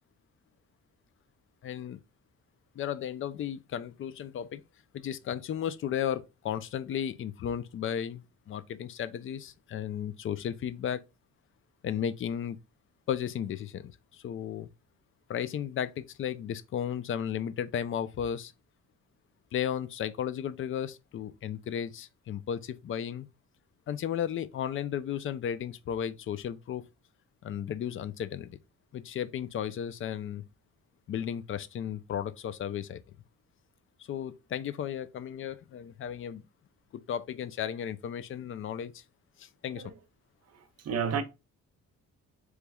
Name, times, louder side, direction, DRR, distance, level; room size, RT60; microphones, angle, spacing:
voice 1, 1.6-2.0 2.7-4.6 4.9-11.0 11.8-12.6 13.1-14.7 15.3-18.5 19.5-23.3 23.9-26.8 27.4-28.5 28.9-30.4 31.1-33.0 34.1-36.4 36.9-39.0 39.4-39.8, left 9 dB, 45° left, 0.4 m, -34 dB
voice 2, 40.5-41.2, right 7 dB, 55° right, 0.7 m, -32 dB
3.4 x 3.0 x 2.2 m
cardioid pair, 90°, 30 cm